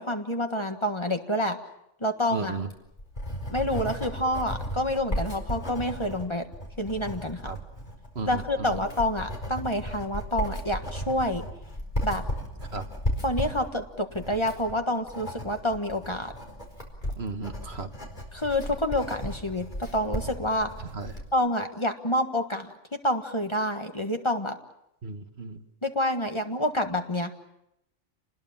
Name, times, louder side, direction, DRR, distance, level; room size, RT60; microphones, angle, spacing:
voice 1, 0.0-1.6 2.0-2.5 3.5-6.5 6.8-7.4 8.3-11.4 12.0-12.2 13.2-16.3 18.3-20.7 21.3-24.6 25.8-27.3, left 1 dB, 25° left, 5 dB, 1.5 m, -28 dB
voice 2, 2.3-2.7 7.4-7.6 8.2-8.8 12.7-12.9 17.2-17.9 20.8-21.2 25.0-25.6, right 4 dB, 60° right, 7 dB, 1.8 m, -35 dB
Writing, 2.5-21.3, equal, 40° left, 4.6 m, -35 dB
28.5 x 20.5 x 7.3 m, 0.83 s
omnidirectional pair, 1.2 m